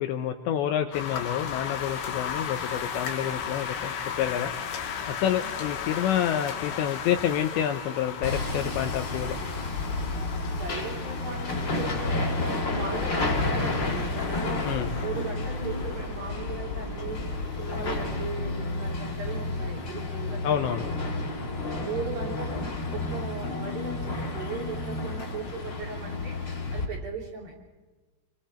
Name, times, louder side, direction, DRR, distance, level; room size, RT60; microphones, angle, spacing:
voice 1, 0.0-4.5 5.1-9.4 14.6-14.9 20.4-20.8, left 10 dB, 80° left, 6 dB, 2.8 m, -28 dB
sound 1, 0.9-19.5, left 7 dB, 60° left, 3.0 m, -37 dB
Hammer, 8.2-26.8, left 2 dB, 30° left, 2.4 m, -31 dB
voice 2, 10.5-20.6 21.8-27.6, right 4 dB, 50° right, -1 dB, 4.7 m, -38 dB
27.0 x 23.0 x 4.4 m, 1.2 s
omnidirectional pair, 5.8 m